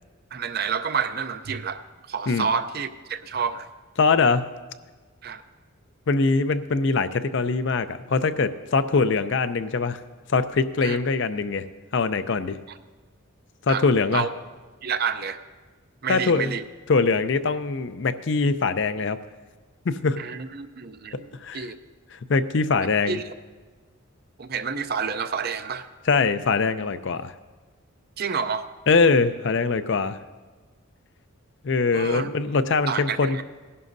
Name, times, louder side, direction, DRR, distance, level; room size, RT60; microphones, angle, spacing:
voice 1, 0.3-3.7 5.2-5.4 10.8-11.0 13.7-13.8 14.1-14.3 14.8-15.4 16.0-16.6 20.2-21.8 23.1-23.2 24.4-25.9 28.2-28.6 31.9-32.3 32.9-33.4, right 6 dB, 45° right, 10 dB, 0.5 m, -29 dB
voice 2, 4.0-4.5 6.1-10.0 10.3-11.6 11.9-12.6 13.7-14.2 16.1-16.5 16.9-19.2 19.9-20.2 21.4-21.7 22.1-23.2 26.1-27.3 28.9-30.2 31.6-33.4, left 4 dB, 60° left, 11 dB, 0.5 m, -22 dB
19.0 x 11.0 x 2.6 m, 1.3 s
head